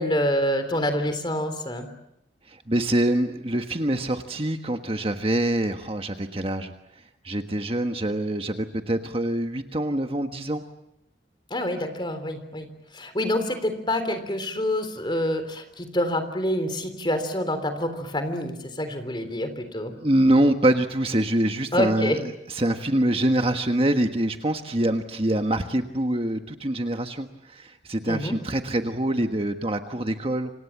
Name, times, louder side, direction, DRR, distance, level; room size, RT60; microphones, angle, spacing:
voice 1, 0.0-1.9 11.5-12.7 12.9-19.9 21.7-22.2 28.0-28.4, left 1 dB, 25° left, 8 dB, 3.6 m, -27 dB
voice 2, 2.7-6.7 7.2-10.6 20.0-22.2 22.5-30.5, right 1 dB, 30° right, 6 dB, 1.4 m, -25 dB
28.5 x 26.5 x 7.4 m, 0.84 s
head